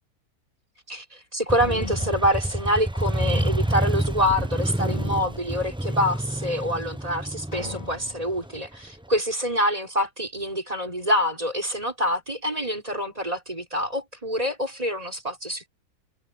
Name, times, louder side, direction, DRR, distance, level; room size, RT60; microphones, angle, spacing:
voice 1, 0.9-15.7, equal, 25° right, 5.3 m, -26 dB
Motorcycle, 1.5-9.1, right 1 dB, 5° right, 0.4 m, -28 dB
sound 1, 1.6-2.9 3.2-4.5 4.7-6.1 6.6-6.7 7.5-8.4, left 2 dB, 25° left, 2.5 m, -38 dB
omnidirectional pair, 1.5 m